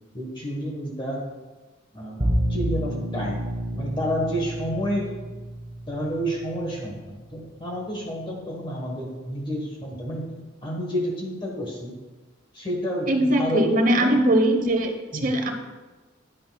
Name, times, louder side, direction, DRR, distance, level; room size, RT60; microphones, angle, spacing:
voice 1, 0.1-1.2 1.9-2.2 2.5-3.4 3.7-5.1 5.9-10.3 10.6-11.9 12.5-13.7 14.0-14.2 15.1-15.3, equal, 25° left, -2 dB, 1.2 m, -30 dB
Bowed string instrument, 2.2-7.3, equal, 20° right, 1.2 m, -30 dB
voice 2, 13.1-14.9 15.2-15.5, right 1 dB, 40° right, 4 dB, 1.0 m, -20 dB
10.5 x 10.0 x 2.3 m, 1.2 s
head